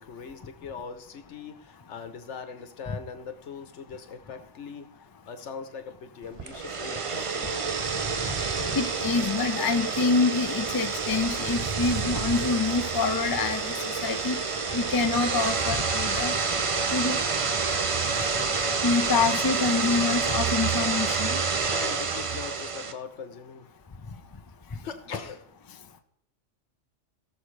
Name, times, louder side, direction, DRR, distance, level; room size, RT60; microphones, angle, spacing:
voice 1, 0.0-4.9 5.2-7.5 21.7-23.7 24.8-25.5, left 6 dB, 70° left, 8 dB, 1.3 m, -40 dB
sound 1, 6.4-22.9, right 4 dB, 35° right, 0.5 m, -28 dB
voice 2, 8.7-13.7 14.0-14.4 14.7-16.3 16.9-17.2 18.8-21.4, left 4 dB, 25° left, 7 dB, 0.5 m, -26 dB
18.0 x 6.4 x 3.3 m, 0.76 s
omnidirectional pair, 1.2 m